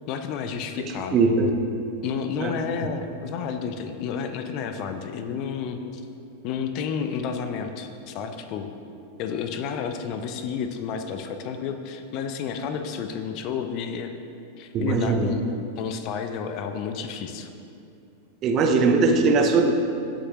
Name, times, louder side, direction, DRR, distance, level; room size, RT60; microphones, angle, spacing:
voice 1, 0.1-1.3 2.0-5.8 6.4-8.7 9.2-14.1 14.6-15.4 15.8-17.5, left 6 dB, 40° left, 7 dB, 0.6 m, -31 dB
voice 2, 1.1-1.5 2.4-2.5 14.7-15.3 18.4-19.7, right 4 dB, 35° right, 4 dB, 0.8 m, -20 dB
15.0 x 6.4 x 3.0 m, 2.5 s
figure-of-eight pair, 90°, 0 cm